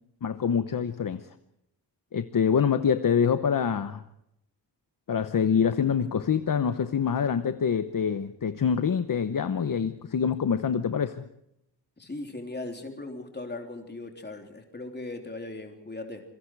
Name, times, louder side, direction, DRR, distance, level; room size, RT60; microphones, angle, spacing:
voice 1, 0.2-1.3 2.1-4.0 5.1-11.3, left 7 dB, 50° left, 10 dB, 0.9 m, -25 dB
voice 2, 12.0-16.2, left 2 dB, 25° left, 3 dB, 3.5 m, -38 dB
27.0 x 23.0 x 4.7 m, 0.80 s
wide cardioid pair, 175°, 42 cm